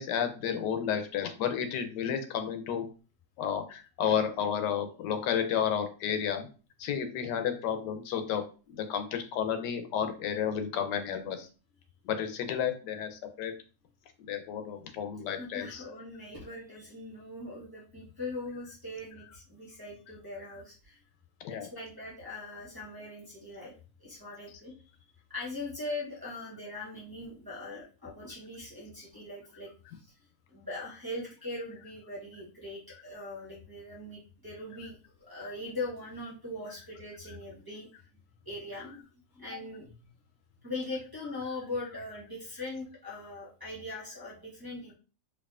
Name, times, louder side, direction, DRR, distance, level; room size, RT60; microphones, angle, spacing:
voice 1, 0.0-2.8 3.4-6.5 6.8-8.4 8.9-11.5 12.0-13.5 14.2-15.8 21.4-21.7, left 8 dB, 85° left, 7 dB, 1.3 m, -31 dB
voice 2, 15.3-21.0 21.5-23.7 24.0-24.7 25.3-30.1 30.5-37.9 38.4-39.1 39.3-39.9 40.6-44.9, left 2 dB, 15° right, -7 dB, 0.9 m, -41 dB
4.6 x 2.6 x 2.4 m, 0.36 s
omnidirectional pair, 1.8 m